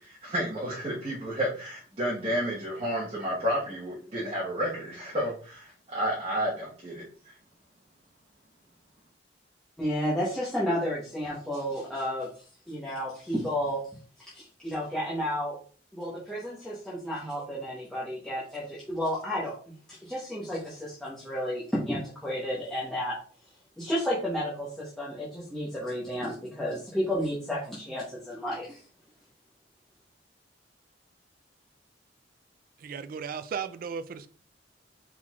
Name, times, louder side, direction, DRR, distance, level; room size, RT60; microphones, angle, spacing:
voice 1, 0.1-7.0, equal, 35° right, 1.2 m, -31 dB
voice 2, 9.8-12.3 12.7-13.9 14.3-15.6 15.9-19.5 19.9-23.2 23.8-28.8, equal, 5° left, 1.0 m, -32 dB
voice 3, 32.8-34.3, right 6 dB, 50° right, 0.3 m, -35 dB
4.5 x 3.7 x 2.4 m
head